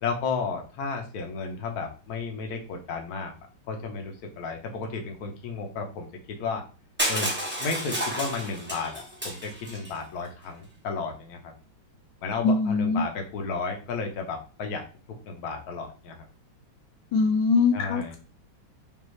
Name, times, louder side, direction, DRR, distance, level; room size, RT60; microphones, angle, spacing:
voice 1, 0.0-3.3 3.7-6.6 7.1-7.3 7.6-11.5 12.2-14.9 15.2-16.3 17.7-18.2, left 4 dB, 55° left, 3 dB, 1.2 m, -33 dB
Crushing, 7.0-9.9, equal, 10° right, 0.8 m, -31 dB
voice 2, 12.4-13.0 17.1-18.2, left 4 dB, 80° left, 4 dB, 1.3 m, -22 dB
5.2 x 2.7 x 3.2 m, 0.34 s
omnidirectional pair, 2.2 m